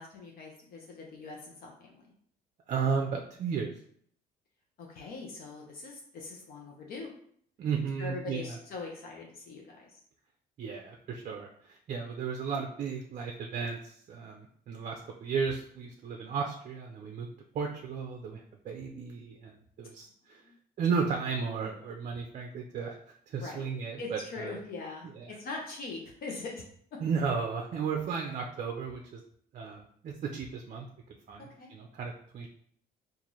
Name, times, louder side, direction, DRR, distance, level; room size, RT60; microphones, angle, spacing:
voice 1, 0.0-2.0 4.8-7.1 8.0-10.0 20.5-20.6 23.4-23.6 24.0-26.6 31.4-31.7, left 3 dB, 60° left, -1 dB, 0.8 m, -42 dB
voice 2, 2.7-3.8 7.6-8.6 10.6-17.3 17.5-20.4 20.8-23.0 23.3-24.6 25.0-25.3 27.0-29.2 29.5-30.9 31.3-32.5, right 5 dB, 45° right, 2 dB, 0.5 m, -34 dB
3.9 x 2.5 x 3.0 m, 0.62 s
cardioid pair, 110°, 17 cm